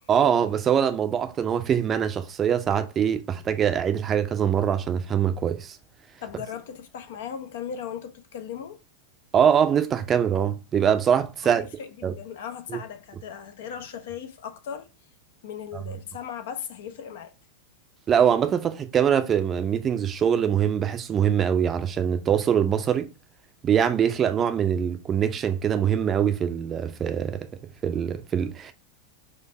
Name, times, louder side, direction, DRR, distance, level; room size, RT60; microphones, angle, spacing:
voice 1, 0.1-5.8 9.3-11.6 12.0-12.1 12.7-12.8 18.1-23.1 23.6-27.5 27.8-28.7, right 8 dB, 25° right, 0.5 m, -23 dB
voice 2, 6.2-8.8 11.4-14.9 15.4-17.3, left 8 dB, 55° left, 0.6 m, -37 dB
4.4 x 2.6 x 4.3 m
figure-of-eight pair, 90°, 0 cm